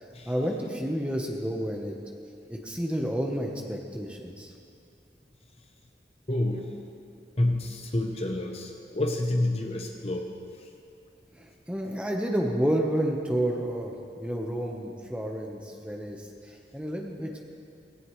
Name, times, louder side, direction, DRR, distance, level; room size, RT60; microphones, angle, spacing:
voice 1, 0.3-1.9 2.5-4.5 11.4-17.4, right 1 dB, 5° right, 0 dB, 1.1 m, -30 dB
voice 2, 6.3-6.7 7.4-10.3 10.6-10.7, left 1 dB, 35° left, 3 dB, 0.9 m, -28 dB
17.0 x 17.0 x 3.2 m, 2.5 s
head